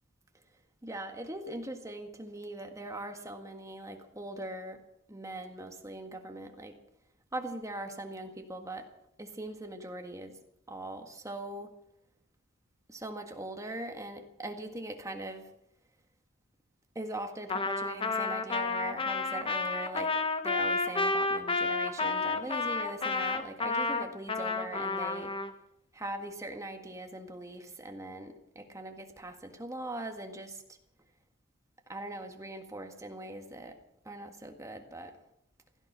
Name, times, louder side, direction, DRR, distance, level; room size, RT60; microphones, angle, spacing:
voice 1, 0.8-4.8 5.1-6.7 7.3-8.9 9.2-10.4 10.7-11.7 12.9-15.5 16.9-20.1 20.4-25.3 25.9-30.6 31.9-33.7 34.0-35.1, right 1 dB, 15° right, 4 dB, 1.7 m, -41 dB
Trumpet, 17.5-25.5, left 3 dB, 25° left, 1.0 m, -31 dB
16.5 x 13.5 x 6.2 m, 0.79 s
head